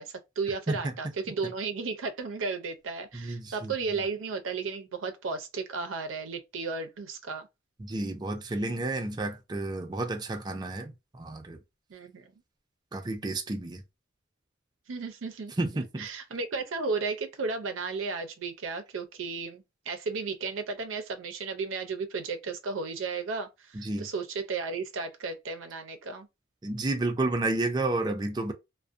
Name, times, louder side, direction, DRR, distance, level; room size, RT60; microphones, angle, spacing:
voice 1, 0.0-7.5 11.9-12.3 14.9-15.5 16.0-26.3, right 4 dB, 85° right, 0.5 m, -34 dB
voice 2, 3.1-3.7 7.8-11.6 12.9-13.8 15.6-16.1 23.7-24.1 26.6-28.5, right 2 dB, 20° right, 0.4 m, -31 dB
2.4 x 2.1 x 2.4 m
head